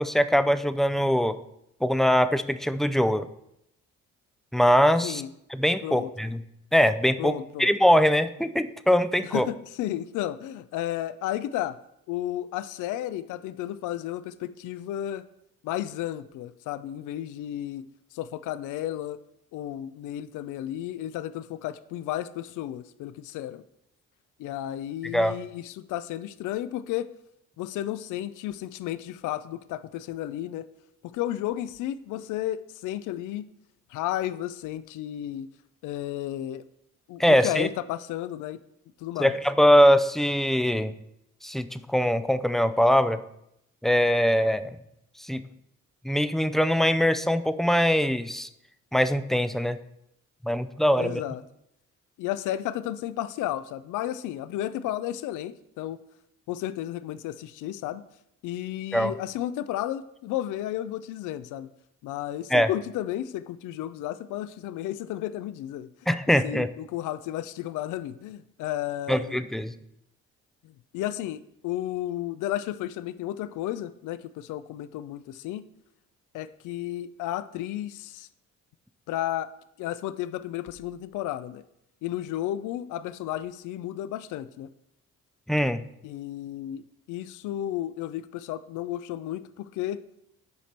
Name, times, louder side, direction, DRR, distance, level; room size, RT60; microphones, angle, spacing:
voice 1, 0.0-1.4 1.8-3.3 4.5-5.2 5.5-6.4 6.7-9.5 25.0-25.3 37.2-37.7 39.2-40.9 41.4-43.2 43.8-44.8 45.3-45.4 46.0-48.5 48.9-49.8 50.4-51.2 58.9-59.1 62.5-62.7 66.1-66.7 69.1-69.7 85.5-85.8, equal, ahead, 12 dB, 0.3 m, -22 dB
voice 2, 7.2-7.7 9.2-11.8 12.1-15.2 15.6-17.8 18.1-19.2 19.5-23.6 24.4-27.1 27.6-30.7 31.0-33.5 33.9-35.5 35.8-36.6 37.1-38.6 39.0-39.4 51.0-51.4 52.2-56.0 56.5-58.0 58.4-61.7 62.0-65.9 66.3-69.4 70.9-75.6 76.3-78.3 79.1-79.5 79.8-81.6 82.0-84.7 86.0-86.8 87.1-90.0, left 13 dB, 80° left, 14 dB, 0.4 m, -33 dB
8.2 x 5.1 x 4.3 m, 0.79 s
cardioid pair, 90°, 30 cm